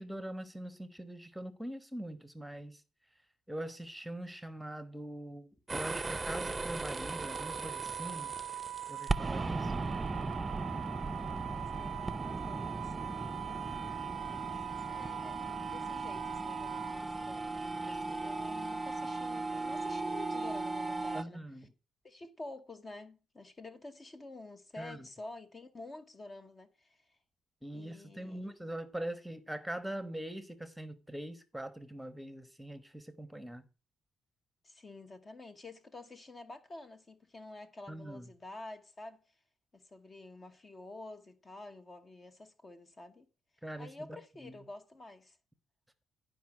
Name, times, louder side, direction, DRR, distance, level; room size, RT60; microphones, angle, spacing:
voice 1, 0.0-2.8 3.5-8.3 8.9-9.9 14.4-14.7 15.0-15.1 17.8-18.2 21.1-21.7 24.8-25.1 27.6-33.6 37.9-38.3 43.6-44.5, right 1 dB, 5° right, 1.1 m, -43 dB
sound 1, 5.7-21.2, right 3 dB, 25° right, 0.5 m, -37 dB
Wind instrument woodwind instrument, 7.1-17.0, right 12 dB, 75° right, 0.5 m, -42 dB
voice 2, 9.1-13.4 14.2-14.6 14.9-21.4 22.0-27.2 27.7-28.5 34.6-39.4 39.7-43.3 43.8-45.4, left 2 dB, 30° left, 1.1 m, -50 dB
11.5 x 5.1 x 6.2 m
cardioid pair, 90°, 0 cm